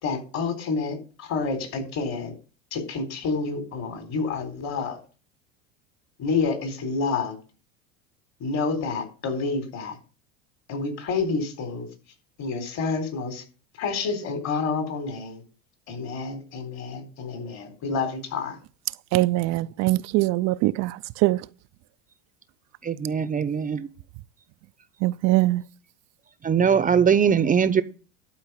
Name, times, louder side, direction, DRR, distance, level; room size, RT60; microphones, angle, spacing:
voice 1, 0.0-2.3 2.7-5.0 6.2-7.4 8.4-10.0 10.7-11.9 12.4-13.4 13.8-15.4 15.9-18.6, left 4 dB, 50° left, 4.1 m, -29 dB
voice 2, 19.1-20.9 21.2-21.4 25.0-25.6, right 19 dB, 50° right, 0.5 m, -22 dB
voice 3, 22.8-23.9 26.4-27.8, right 7 dB, 20° right, 0.8 m, -21 dB
11.5 x 4.7 x 8.0 m
hypercardioid pair, 90°, 36 cm